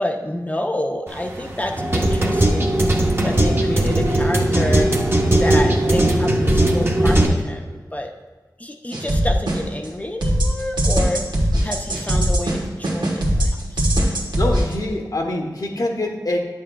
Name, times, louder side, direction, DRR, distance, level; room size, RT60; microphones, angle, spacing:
voice 1, 0.0-2.8 3.2-4.9 5.4-8.1 8.6-11.2 11.6-13.9, left 1 dB, 20° left, 3 dB, 0.6 m, -28 dB
sound 1, 1.1-7.3, right 1 dB, 35° right, 0.8 m, -18 dB
sound 2, 8.9-9.9 10.2-14.7, equal, 90° right, 1.3 m, -20 dB
voice 2, 14.4-16.4, left 1 dB, 55° left, 1 dB, 1.0 m, -24 dB
9.6 x 7.4 x 2.3 m, 1.3 s
wide cardioid pair, 80°, 7 cm